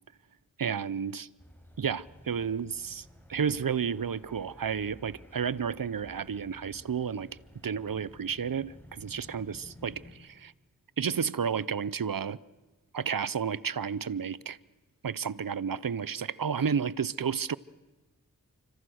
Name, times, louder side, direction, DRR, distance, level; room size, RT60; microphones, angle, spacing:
voice 1, 0.6-1.3 1.8-7.3 7.6-10.5 11.0-12.4 12.9-14.6 15.0-17.6, right 7 dB, 80° right, 0.8 m, -31 dB
sound 1, 1.4-10.2, left 1 dB, 5° left, 6.7 m, -54 dB
30.0 x 26.0 x 6.4 m
wide cardioid pair, 45°, 34 cm